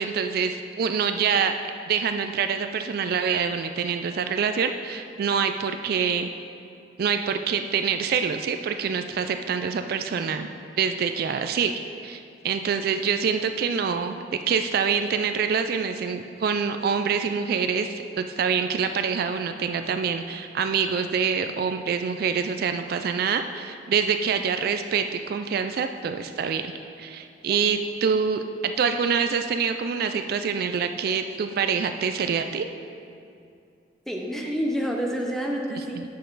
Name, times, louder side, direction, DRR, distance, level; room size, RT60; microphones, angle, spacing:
voice 1, 0.0-1.5 1.9-6.3 7.0-10.5 10.8-11.7 12.0-14.2 14.5-26.7 27.0-32.7 35.7-36.0, right 6 dB, 55° right, 8 dB, 0.3 m, -26 dB
voice 2, 34.1-36.0, equal, ahead, 0 dB, 0.7 m, -28 dB
8.4 x 6.6 x 3.9 m, 2.5 s
head